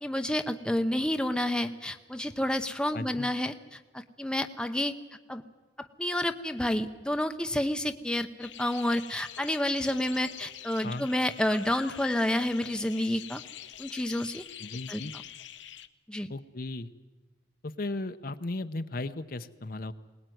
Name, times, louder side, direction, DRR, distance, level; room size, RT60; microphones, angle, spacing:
voice 1, 0.0-4.9 5.3-5.4 5.8-13.4 13.8-14.4 14.9-15.0 16.1-16.3, left 1 dB, 5° left, 7 dB, 0.8 m, -29 dB
voice 2, 2.9-3.3 10.8-11.1 14.6-15.1 16.3-16.9 17.6-19.9, left 2 dB, 50° left, 10 dB, 0.9 m, -36 dB
sound 1, 8.4-15.9, left 9 dB, 90° left, 0.9 m, -44 dB
22.0 x 19.5 x 9.3 m, 1.2 s
head